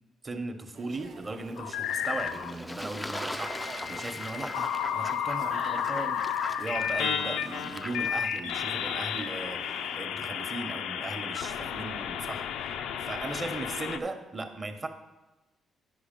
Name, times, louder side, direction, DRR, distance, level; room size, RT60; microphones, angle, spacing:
voice 1, 0.2-6.2 6.6-12.7 13.0-14.9, right 2 dB, 30° right, 7 dB, 0.9 m, -37 dB
sound 1, 0.7-10.0, right 3 dB, 60° right, 0.8 m, -47 dB
sound 2, 1.6-2.5 3.4-14.0, left 8 dB, 85° left, 0.4 m, -32 dB
Fowl / Bird / Water, 1.8-8.4, left 2 dB, 15° left, 0.3 m, -40 dB
9.9 x 4.9 x 5.2 m, 1.1 s
cardioid pair, 90°, 0 cm